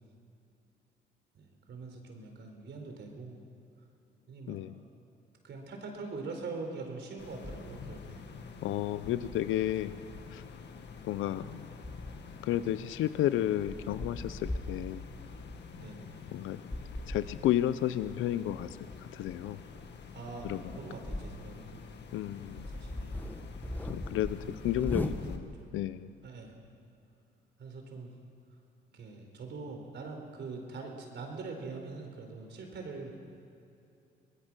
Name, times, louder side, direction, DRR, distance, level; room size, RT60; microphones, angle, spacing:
voice 1, 1.3-3.4 4.3-4.6 5.4-8.3 8.5-8.8 9.9-10.0 15.7-16.2 20.1-21.8 22.6-23.1 24.5-25.7 26.2-26.5 27.6-28.1 28.9-33.1, right 3 dB, 60° right, 3 dB, 4.1 m, -43 dB
voice 2, 4.5-4.8 8.6-9.9 10.3-10.4 11.0-11.7 12.4-15.0 16.3-16.6 17.1-19.6 20.4-20.7 22.1-22.7 23.9-26.1, left 12 dB, 85° left, 14 dB, 0.6 m, -32 dB
sound 1, 7.2-25.4, left 6 dB, 60° left, 1.8 m, -48 dB
sound 2, 7.4-8.0 9.2-11.2 11.8-12.4 13.1-13.2 13.7-15.6 16.7-17.3 18.0-21.5 21.9-22.0 22.4-25.6, left 1 dB, 10° left, 1.4 m, -40 dB
24.0 x 19.5 x 6.2 m, 2.6 s
cardioid pair, 90°, 20 cm